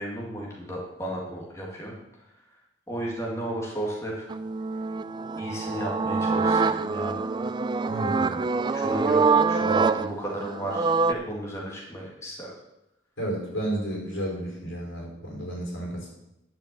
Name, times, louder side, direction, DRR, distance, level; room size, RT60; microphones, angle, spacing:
voice 1, 0.0-2.0 2.9-4.3 5.4-7.3 8.7-12.5, right 1 dB, 15° left, -3 dB, 2.0 m, -34 dB
sound 1, 4.3-11.1, right 4 dB, 25° right, 0.3 m, -25 dB
voice 2, 7.9-8.4 13.2-16.1, right 1 dB, 80° left, -1 dB, 4.9 m, -32 dB
10.5 x 6.0 x 8.1 m, 0.88 s
head